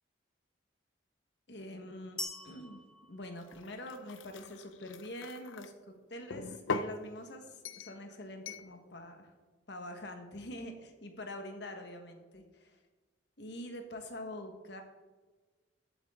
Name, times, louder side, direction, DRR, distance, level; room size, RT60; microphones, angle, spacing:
voice 1, 1.5-2.8 3.1-9.3 9.7-12.8 13.4-14.8, left 1 dB, 65° left, 5 dB, 1.5 m, -45 dB
sound 1, 2.2-4.1, left 1 dB, 5° left, 0.5 m, -44 dB
sound 2, 3.4-5.7 6.3-7.0 7.7-8.0 8.5-8.7, left 4 dB, 85° left, 0.6 m, -40 dB
14.5 x 8.3 x 3.8 m, 1.4 s
head